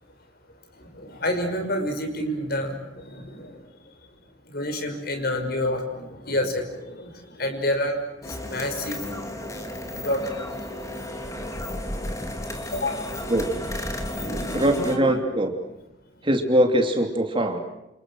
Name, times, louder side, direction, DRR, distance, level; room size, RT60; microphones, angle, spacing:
voice 1, 0.7-3.9 4.4-9.3 9.7-11.4 12.2-13.3 14.0-15.2, left 1 dB, 50° left, 5 dB, 5.8 m, -30 dB
sound 1, 8.2-15.0, left 1 dB, 15° left, 3.3 m, -33 dB
voice 2, 14.5-15.5 16.2-17.6, right 1 dB, 25° right, 4 dB, 3.1 m, -22 dB
29.5 x 29.0 x 6.4 m, 0.87 s
head